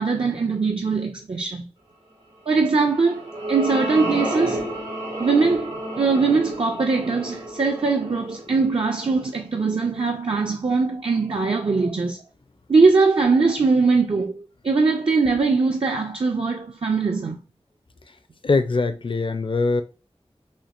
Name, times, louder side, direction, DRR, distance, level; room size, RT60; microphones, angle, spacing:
voice 1, 0.0-1.6 2.5-4.6 5.2-12.2 12.7-14.4 14.6-17.4, right 4 dB, 55° right, 0.5 m, -21 dB
sound 1, 2.7-9.3, right 1 dB, 85° right, 1.8 m, -31 dB
voice 2, 18.4-19.8, left 3 dB, 50° left, 0.5 m, -22 dB
4.4 x 2.9 x 2.4 m
wide cardioid pair, 55°, 11 cm